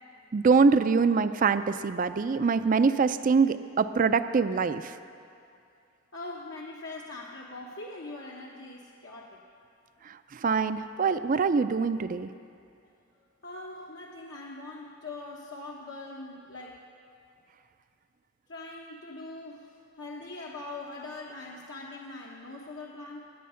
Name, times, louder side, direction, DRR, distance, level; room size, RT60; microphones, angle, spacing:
voice 1, 0.3-4.9 10.3-12.3, right 5 dB, 45° right, 12 dB, 0.4 m, -24 dB
voice 2, 6.1-9.4 13.4-16.8 18.5-23.3, left 2 dB, 70° left, -3 dB, 1.1 m, -42 dB
20.5 x 8.6 x 5.7 m, 2.5 s
head